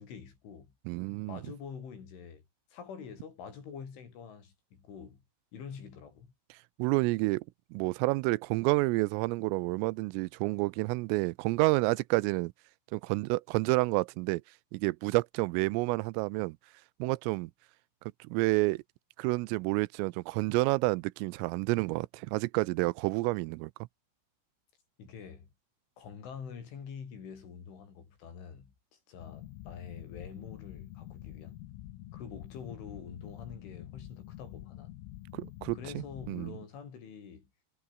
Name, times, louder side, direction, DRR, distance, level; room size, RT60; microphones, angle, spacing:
voice 1, 0.0-0.7 1.3-2.4 2.7-5.2 5.5-6.3 25.0-25.5 26.0-31.6 32.1-35.0 35.7-37.5, left 6 dB, 70° left, 7.5 m, -46 dB
voice 2, 0.9-1.4 6.8-7.4 7.7-12.5 12.9-14.4 14.7-16.6 17.0-17.5 18.2-18.8 19.2-23.7 35.3-36.5, right 23 dB, 90° right, 3.3 m, -29 dB
sound 1, 29.2-36.5, left 15 dB, 90° left, 4.1 m, -47 dB
omnidirectional pair, 5.8 m